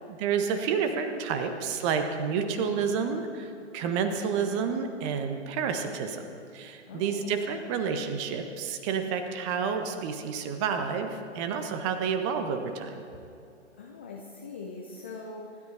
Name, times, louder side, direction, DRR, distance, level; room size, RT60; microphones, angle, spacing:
voice 1, 0.0-6.2 6.5-13.0, right 6 dB, 25° right, 6 dB, 1.3 m, -30 dB
voice 2, 6.9-7.4 13.8-15.6, left 3 dB, 10° left, 0 dB, 0.4 m, -42 dB
25.0 x 13.0 x 4.4 m, 2.8 s
figure-of-eight pair, 120°, 36 cm